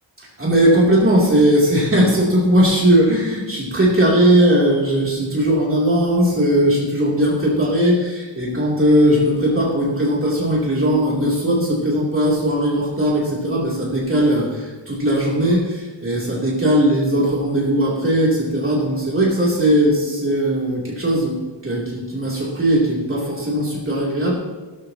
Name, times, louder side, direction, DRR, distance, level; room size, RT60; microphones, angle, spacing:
voice 1, 0.2-21.4 21.6-24.3, equal, 30° right, -5 dB, 3.0 m, -18 dB
17.5 x 13.0 x 2.9 m, 1.3 s
wide cardioid pair, 150°, 43 cm